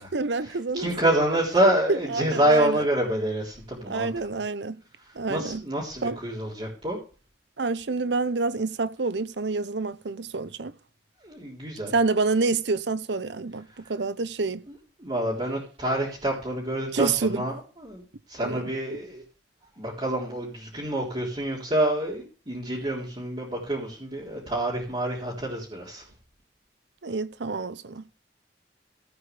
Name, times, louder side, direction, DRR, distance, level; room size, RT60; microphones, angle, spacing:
voice 1, 0.0-0.9 1.9-2.9 3.9-4.8 5.1-5.6 6.0-6.2 7.6-10.7 11.9-14.6 16.9-17.5 18.4-18.7 27.0-28.1, right 3 dB, 75° right, 0.8 m, -28 dB
voice 2, 0.7-4.1 5.3-7.0 11.2-11.9 15.0-18.0 18.3-19.2 19.8-26.0, right 1 dB, 30° right, 3.7 m, -27 dB
15.5 x 8.8 x 3.3 m
head